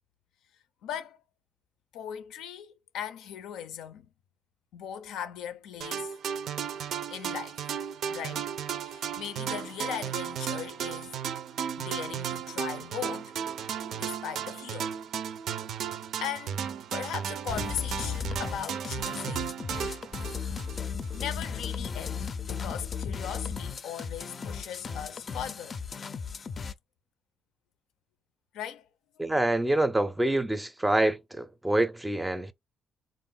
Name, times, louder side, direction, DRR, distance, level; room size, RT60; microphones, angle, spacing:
voice 1, 0.8-1.2 1.9-4.1 4.7-6.1 7.1-7.6 8.1-8.5 8.8-11.2 11.8-13.3 13.9-14.9 16.2-16.7 16.9-19.6 21.1-25.8 28.5-28.9, left 9 dB, 90° left, 0.5 m, -38 dB
sound 1, 5.8-21.2, right 8 dB, 75° right, 0.4 m, -35 dB
sound 2, 17.5-26.7, left 6 dB, 40° left, 0.5 m, -36 dB
voice 2, 29.2-32.5, right 1 dB, 10° right, 0.5 m, -26 dB
3.7 x 2.4 x 3.7 m
cardioid pair, 90°, 0 cm